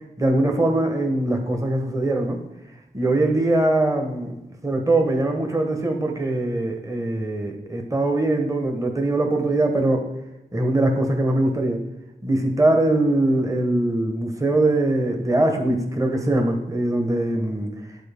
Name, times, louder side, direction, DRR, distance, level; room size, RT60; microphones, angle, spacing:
voice 1, 0.2-2.4 2.9-4.4 4.6-10.0 10.5-11.8 12.2-17.7, right 2 dB, 20° right, 3 dB, 0.9 m, -22 dB
9.5 x 4.2 x 3.4 m, 0.93 s
wide cardioid pair, 65°, 18 cm